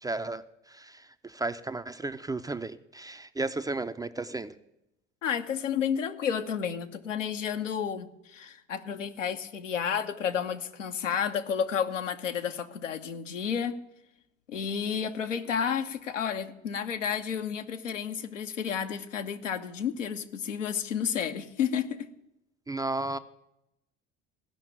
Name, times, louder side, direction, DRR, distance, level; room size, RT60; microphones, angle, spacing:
voice 1, 0.0-4.5 22.7-23.2, right 2 dB, 10° right, 0.5 m, -34 dB
voice 2, 5.2-13.8 14.5-22.1, left 7 dB, 80° left, 0.9 m, -31 dB
15.5 x 5.8 x 9.0 m
figure-of-eight pair, 60°, 37 cm